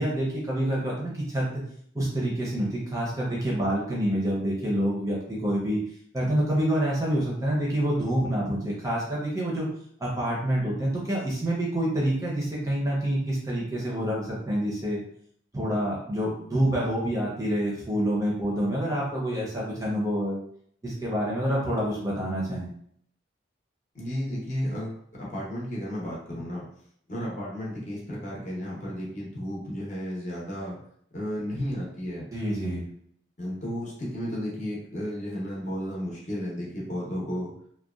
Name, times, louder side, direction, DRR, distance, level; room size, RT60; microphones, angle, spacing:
voice 1, 0.0-1.6 1.9-5.8 6.1-9.7 10.0-15.0 15.5-20.4 20.8-22.7 32.3-32.8, right 1 dB, 15° right, -4 dB, 0.5 m, -27 dB
voice 2, 23.9-26.6 27.1-30.8 31.1-32.3 33.4-37.5, equal, 40° left, -5 dB, 0.8 m, -33 dB
2.8 x 2.1 x 2.3 m, 0.66 s
head